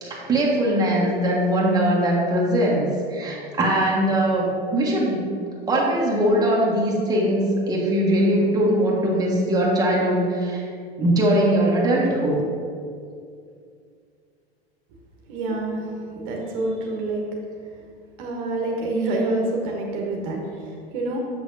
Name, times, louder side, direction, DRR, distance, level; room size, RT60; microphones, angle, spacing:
voice 1, 0.0-5.3 5.7-10.6 11.0-12.4, right 1 dB, 10° right, -4 dB, 1.3 m, -21 dB
voice 2, 15.3-15.9 16.1-17.2 18.2-21.2, right 2 dB, 50° right, -1 dB, 1.1 m, -27 dB
6.5 x 6.2 x 2.7 m, 2.3 s
figure-of-eight pair, 90°, 31 cm